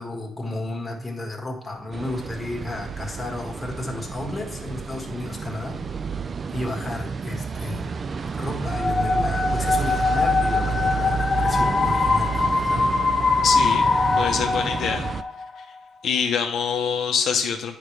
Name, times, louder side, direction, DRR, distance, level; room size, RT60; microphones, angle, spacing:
voice 1, 0.0-5.8 6.5-7.9 8.4-13.0, left 2 dB, 15° left, 0 dB, 1.7 m, -32 dB
sound 1, 1.9-15.2, right 5 dB, 40° right, 0.3 m, -30 dB
sound 2, 8.7-15.5, left 4 dB, 30° left, 0.8 m, -22 dB
voice 2, 13.4-13.9 14.2-15.0 15.6-15.7 16.0-17.8, left 7 dB, 75° left, 3 dB, 0.7 m, -24 dB
8.9 x 5.0 x 3.3 m, 0.76 s
cardioid pair, 90°, 0 cm